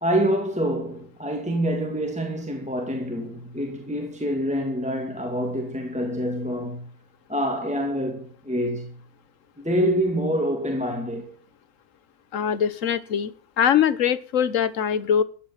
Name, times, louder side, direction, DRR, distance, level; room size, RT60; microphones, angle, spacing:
voice 1, 0.0-6.9 7.3-9.0 9.6-11.3, equal, 5° right, 2.4 m, -26 dB
voice 2, 12.3-15.2, left 8 dB, 60° left, 1.4 m, -22 dB
14.0 x 10.5 x 5.8 m
omnidirectional pair, 1.6 m